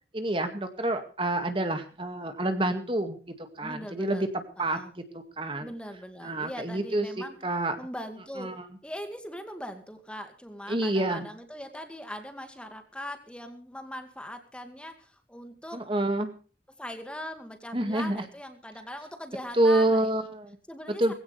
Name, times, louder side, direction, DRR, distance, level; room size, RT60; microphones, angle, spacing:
voice 1, 0.1-3.2 3.6-4.3 4.6-4.8 5.1-5.7 6.2-7.8 8.4-8.5 10.7-11.3 15.7-16.3 17.7-18.2 19.6-20.6 21.0-21.1, right 1 dB, 30° right, 7 dB, 2.0 m, -27 dB
voice 2, 3.6-4.3 4.6-4.9 5.6-7.4 7.8-15.9 16.7-20.1 20.7-21.1, equal, 5° left, 6 dB, 2.1 m, -40 dB
20.5 x 16.5 x 3.4 m, 0.38 s
head